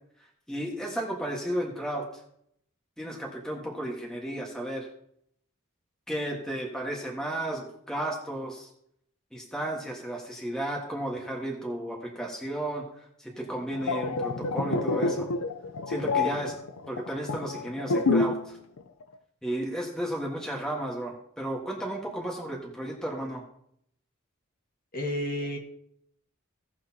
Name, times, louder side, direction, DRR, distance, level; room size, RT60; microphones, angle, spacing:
voice 1, 0.5-2.1 3.0-4.9 6.1-8.7 9.3-15.3 15.9-16.5 16.9-18.6 19.4-23.4, right 1 dB, 5° left, -2 dB, 1.5 m, -33 dB
sound 1, 13.6-18.5 18.8-19.0, left 3 dB, 90° left, 0.6 m, -28 dB
voice 2, 24.9-25.6, left 1 dB, 40° left, 1 dB, 1.8 m, -31 dB
17.0 x 6.4 x 2.8 m, 0.71 s
head